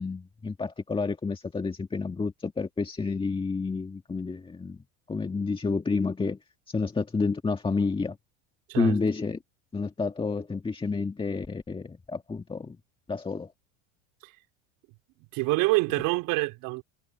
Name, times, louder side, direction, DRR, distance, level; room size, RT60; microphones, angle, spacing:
voice 1, 0.0-4.8 5.1-6.4 6.7-8.2 8.7-9.4 9.7-12.8 13.1-13.5, left 4 dB, 15° left, 2.0 m, -29 dB
voice 2, 15.3-16.8, right 23 dB, 65° right, 4.1 m, -26 dB
supercardioid pair, 105°, 36 cm